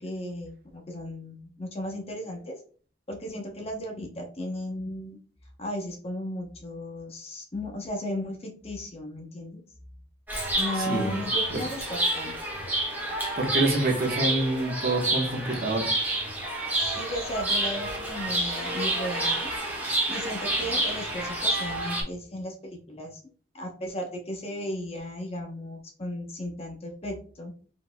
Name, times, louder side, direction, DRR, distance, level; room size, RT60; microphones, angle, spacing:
voice 1, 0.0-2.6 3.1-5.2 5.6-9.6 10.6-12.4 16.7-19.5 20.1-23.2 23.5-27.5, left 1 dB, 35° left, 2 dB, 0.9 m, -35 dB
Chirp tweet, 10.3-22.0, right 1 dB, 10° right, 1.4 m, -29 dB
voice 2, 10.4-11.2 13.4-15.9, right 2 dB, 50° right, 1 dB, 1.1 m, -27 dB
4.5 x 4.0 x 2.2 m, 0.43 s
head